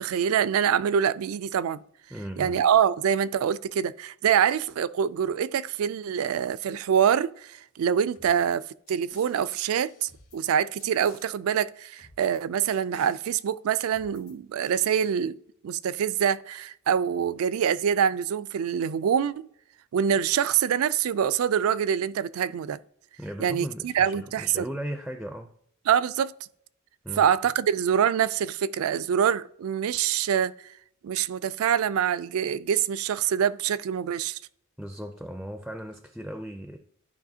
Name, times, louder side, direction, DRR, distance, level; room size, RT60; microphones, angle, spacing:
voice 1, 0.0-1.8 2.4-15.4 15.6-19.5 19.9-22.8 23.4-24.7 25.9-26.3 27.2-30.5 31.0-34.4, right 8 dB, 75° right, 0.3 m, -25 dB
voice 2, 2.1-2.6 23.2-25.5 27.0-27.3 34.8-36.8, equal, ahead, 0.4 m, -37 dB
sound 1, 8.1-8.6 8.9-10.5 10.8-11.3 12.0-12.4 12.7-13.2 13.9-14.3 14.6-15.1, left 4 dB, 75° left, 1.6 m, -54 dB
11.5 x 4.8 x 2.7 m
head